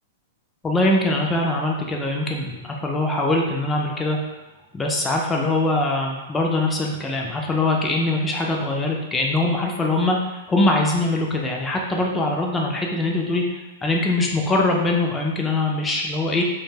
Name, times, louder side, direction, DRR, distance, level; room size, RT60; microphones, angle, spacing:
voice 1, 0.6-4.2 4.7-16.4, left 2 dB, 15° left, 0 dB, 0.4 m, -22 dB
2.2 x 2.1 x 3.2 m, 1.1 s
hypercardioid pair, 135°, 0 cm